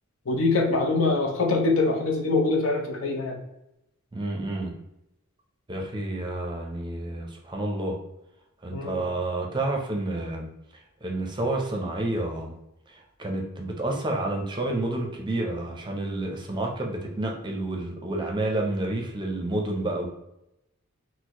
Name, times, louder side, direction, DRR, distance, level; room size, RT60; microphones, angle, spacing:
voice 1, 0.3-3.4 8.7-9.0, left 3 dB, 70° left, 1 dB, 0.7 m, -24 dB
voice 2, 4.1-4.7 5.7-8.0 8.6-10.5 11.0-12.5 12.9-20.1, right 2 dB, 20° right, 1 dB, 0.6 m, -29 dB
4.3 x 2.1 x 2.9 m, 0.85 s
head